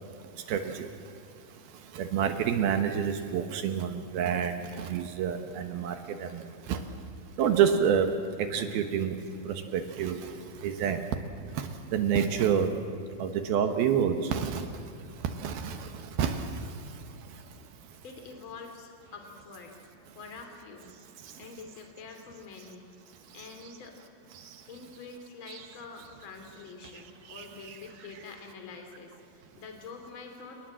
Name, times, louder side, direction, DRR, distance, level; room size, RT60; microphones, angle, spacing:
voice 1, 0.5-0.9 1.9-6.8 7.4-9.2 9.5-11.0 11.5-12.7 13.2-14.7 15.2-16.8 21.2-21.3 24.3-24.6 25.5-25.7 26.9-27.0 27.3-27.8, right 8 dB, 70° right, 7 dB, 2.8 m, -29 dB
voice 2, 18.0-19.8 20.1-20.9 21.4-22.9 23.3-24.0 24.7-30.6, left 4 dB, 30° left, 4 dB, 3.2 m, -46 dB
29.0 x 20.0 x 7.5 m, 2.6 s
omnidirectional pair, 5.0 m